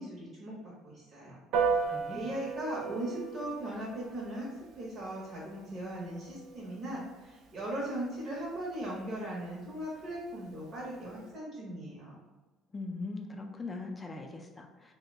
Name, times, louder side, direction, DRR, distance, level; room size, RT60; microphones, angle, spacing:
voice 1, 0.0-1.4 2.1-12.2, right 1 dB, 45° right, -5 dB, 0.8 m, -39 dB
Piano, 1.5-11.3, right 5 dB, 65° right, 0.4 m, -38 dB
voice 2, 1.8-2.3 12.7-14.9, left 3 dB, 15° left, 2 dB, 0.4 m, -41 dB
2.7 x 2.1 x 3.8 m, 1.2 s
cardioid pair, 140°, 0 cm